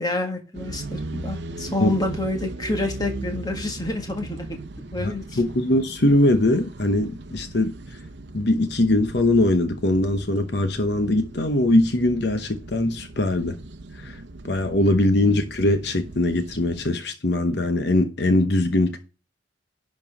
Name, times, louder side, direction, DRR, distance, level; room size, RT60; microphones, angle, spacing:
voice 1, 0.0-4.6 4.9-5.4 15.2-15.3, left 2 dB, 20° left, 1.8 m, -28 dB
sound 1, 0.5-16.9, right 2 dB, 60° right, 0.8 m, -38 dB
voice 2, 5.0-8.0 8.3-13.6 13.9-19.0, left 1 dB, 55° left, 0.9 m, -21 dB
11.0 x 4.5 x 5.9 m
head